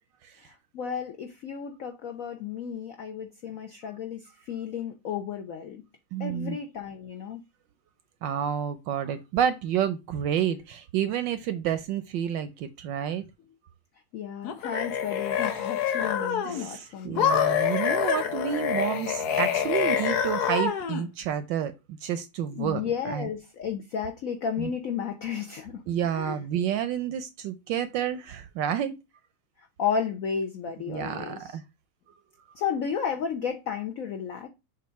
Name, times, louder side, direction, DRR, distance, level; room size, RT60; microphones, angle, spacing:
voice 1, 0.4-5.8 6.2-7.4 14.1-17.3 22.5-25.8 26.1-26.4 29.6-31.6 32.5-34.5, left 7 dB, 80° left, 0.7 m, -33 dB
voice 2, 6.1-6.6 8.2-13.2 16.4-21.7 22.0-23.3 24.6-24.7 25.9-28.9 30.9-31.6, right 9 dB, 75° right, 1.1 m, -29 dB
sound 1, 14.4-16.7 17.2-21.0, left 8 dB, 60° left, 1.2 m, -26 dB
7.2 x 2.6 x 5.6 m
omnidirectional pair, 2.3 m